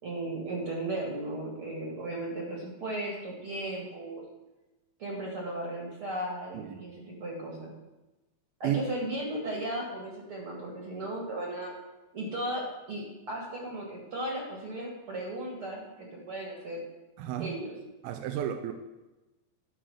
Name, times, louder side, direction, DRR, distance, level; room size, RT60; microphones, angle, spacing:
voice 1, 0.0-4.2 5.0-7.7 8.6-11.8 12.1-16.8 17.4-17.7, right 1 dB, 40° right, -2 dB, 2.3 m, -36 dB
voice 2, 17.2-17.5 18.0-18.7, right 11 dB, 80° right, 6 dB, 2.4 m, -32 dB
12.5 x 5.8 x 6.3 m, 1.1 s
omnidirectional pair, 4.6 m